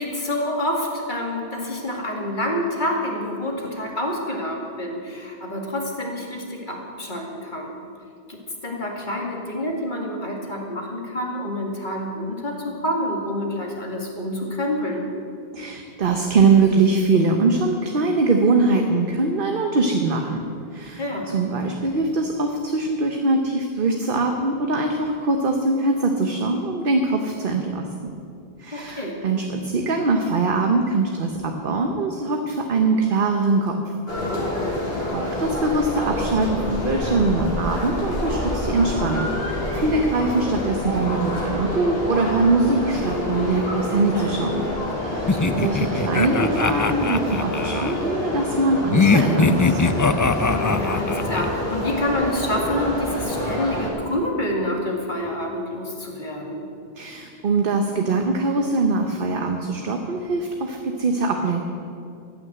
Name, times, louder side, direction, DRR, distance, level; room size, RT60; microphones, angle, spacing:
voice 1, 0.0-7.8 8.3-15.1 21.0-21.3 28.7-29.2 34.6-34.9 45.3-45.7 50.5-56.7, left 1 dB, 50° left, 0 dB, 2.4 m, -28 dB
voice 2, 15.5-20.4 20.7-28.2 28.6-33.8 34.7-44.6 45.0-49.8 57.0-61.6, right 3 dB, 60° right, 3 dB, 1.1 m, -22 dB
sound 1, 34.1-53.9, left 1 dB, 75° left, 4.3 m, -27 dB
sound 2, 45.3-48.0 48.9-51.5, left 4 dB, 30° left, 0.3 m, -21 dB
14.5 x 9.6 x 8.0 m, 2.4 s
omnidirectional pair, 1.0 m